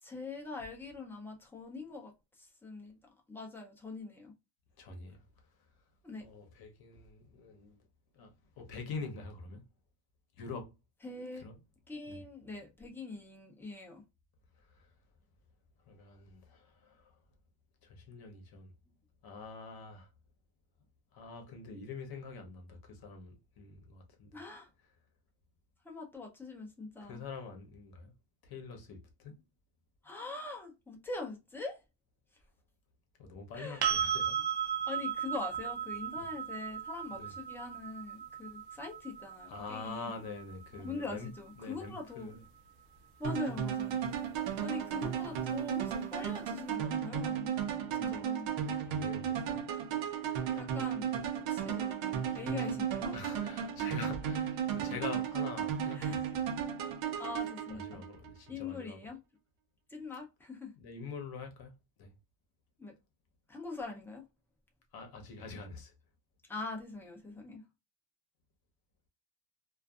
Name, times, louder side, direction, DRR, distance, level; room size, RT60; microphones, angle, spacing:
voice 1, 0.0-2.1 2.4-3.0 3.3-4.3 6.0-6.2 11.0-11.5 11.9-14.0 24.3-24.7 25.8-27.2 30.0-31.8 33.5-33.9 34.9-40.3 40.7-42.4 43.2-44.0 44.6-47.5 47.9-48.5 50.5-51.1 51.4-51.9 52.3-53.2 55.9-56.2 57.2-58.0 58.5-59.2 59.9-60.7 62.8-62.9 63.5-64.2 66.5-67.6, left 3 dB, 5° left, 0.5 m, -43 dB
voice 2, 4.8-5.2 6.2-7.8 8.1-8.3 8.6-9.6 10.4-10.7 11.3-11.6 12.1-12.2 15.9-17.1 17.8-18.7 19.2-20.1 21.1-24.3 27.0-28.1 28.4-29.3 33.2-34.7 36.2-36.3 37.1-37.3 39.5-41.3 41.6-42.4 47.8-48.3 48.6-49.6 52.7-52.8 53.1-56.4 57.7-59.0 60.8-61.7 62.0-62.1 64.9-65.9, left 4 dB, 50° left, 0.8 m, -45 dB
sound 1, 33.8-41.6 44.4-44.5, right 9 dB, 55° right, 0.6 m, -36 dB
sound 2, 43.2-58.3, right 8 dB, 90° right, 0.7 m, -35 dB
2.5 x 2.4 x 2.3 m
cardioid pair, 150°, 47 cm